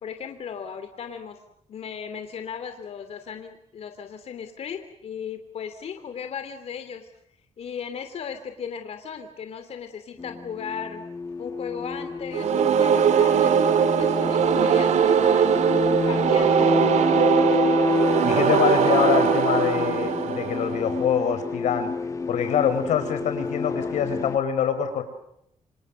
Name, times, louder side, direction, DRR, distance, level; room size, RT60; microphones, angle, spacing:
voice 1, 0.0-1.4 1.7-7.1 7.6-11.0 11.4-15.6 16.0-16.7, left 7 dB, 60° left, 8 dB, 2.9 m, -36 dB
sound 1, 10.2-24.4, left 3 dB, 25° left, 1.2 m, -28 dB
sound 2, 12.3-21.2, right 8 dB, 75° right, 2.1 m, -21 dB
voice 2, 18.2-21.9 22.3-25.0, left 8 dB, 90° left, 9 dB, 5.0 m, -25 dB
28.5 x 27.0 x 6.5 m, 0.76 s
cardioid pair, 135°, 12 cm